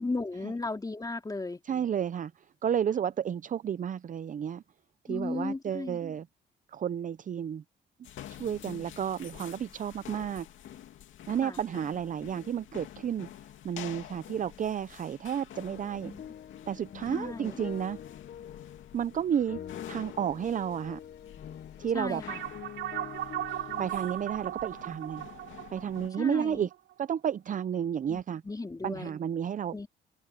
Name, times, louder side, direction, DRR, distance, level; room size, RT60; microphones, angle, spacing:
voice 1, 0.0-1.6 5.1-6.0 11.4-11.6 16.0-16.2 17.1-17.6 21.9-22.4 26.2-26.7 28.1-29.1 29.7-29.9, left 3 dB, 20° left, 2.9 m, -35 dB
voice 2, 1.6-2.3 2.6-4.6 5.1-6.3 6.7-7.6 8.3-10.5 11.3-13.3 13.6-16.1 16.7-18.0 18.9-19.6 19.9-21.0 21.8-22.2 23.8-25.3 25.7-26.7 27.0-28.4 28.8-29.8, right 8 dB, 40° right, 0.6 m, -31 dB
sound 1, 8.0-26.1, left 11 dB, 75° left, 2.6 m, -48 dB
sound 2, 15.7-24.3, left 9 dB, 60° left, 1.3 m, -46 dB
sound 3, 22.3-27.1, right 13 dB, 80° right, 3.1 m, -37 dB
open air
cardioid pair, 90°, 20 cm